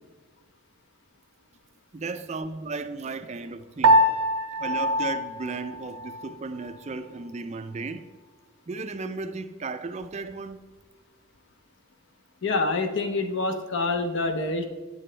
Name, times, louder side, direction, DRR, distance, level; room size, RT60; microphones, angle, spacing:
voice 1, 1.9-4.0 4.6-8.1 8.7-10.6, right 3 dB, 30° right, 0.3 m, -35 dB
Piano, 3.8-6.4, right 1 dB, 75° right, 0.6 m, -23 dB
voice 2, 12.4-14.6, left 3 dB, 55° left, 0.6 m, -26 dB
8.4 x 6.9 x 3.3 m
head